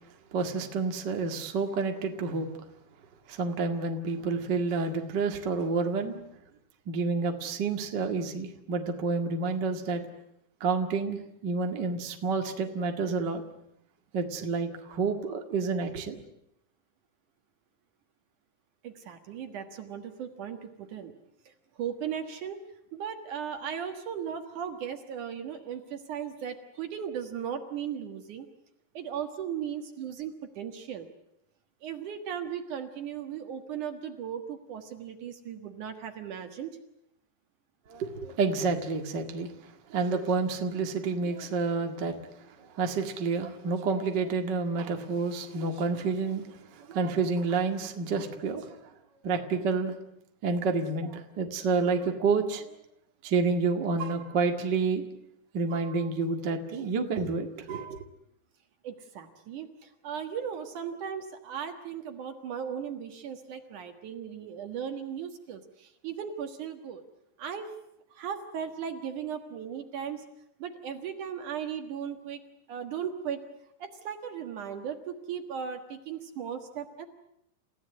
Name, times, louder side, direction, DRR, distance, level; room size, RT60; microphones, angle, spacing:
voice 1, 0.3-2.5 3.3-6.2 6.9-10.0 10.6-13.4 14.1-16.2 37.9-39.5 39.9-42.2 42.6-48.6 49.2-49.9 50.4-52.7 53.2-55.0 55.5-58.0, right 4 dB, 40° right, 4 dB, 1.7 m, -29 dB
voice 2, 18.8-21.1 21.5-22.6 22.9-28.5 28.9-31.1 31.8-36.8 58.8-67.0 67.4-67.7 68.1-70.2 70.6-72.4 72.7-73.4 73.8-77.1, right 8 dB, 60° right, 7 dB, 2.6 m, -37 dB
30.0 x 16.0 x 9.6 m, 0.79 s
omnidirectional pair, 4.7 m